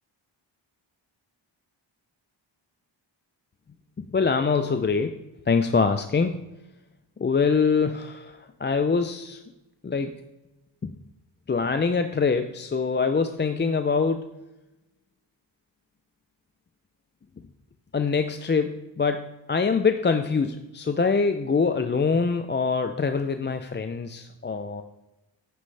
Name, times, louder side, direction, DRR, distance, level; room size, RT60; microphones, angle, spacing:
voice 1, 4.0-5.2 5.5-6.4 7.2-9.4 9.8-10.2 10.8-10.9 11.5-14.3 17.9-24.8, left 5 dB, 25° left, 8 dB, 0.4 m, -24 dB
9.9 x 9.4 x 3.3 m, 0.98 s
wide cardioid pair, 125°, 46 cm